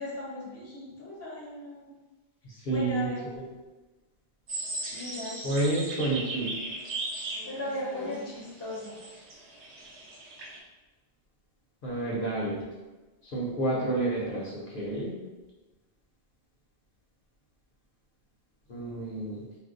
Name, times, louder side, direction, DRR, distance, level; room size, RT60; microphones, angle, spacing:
voice 1, 0.0-1.9 2.7-3.2 4.9-5.4 7.5-9.0, left 1 dB, 15° left, -5 dB, 0.6 m, -37 dB
voice 2, 2.7-3.1 5.4-6.5 11.8-12.6 13.3-15.1 18.7-19.4, right 2 dB, 60° left, -4 dB, 0.8 m, -29 dB
sound 1, 4.5-10.6, right 2 dB, 90° right, 0.9 m, -38 dB
2.5 x 2.1 x 3.7 m, 1.2 s
omnidirectional pair, 1.1 m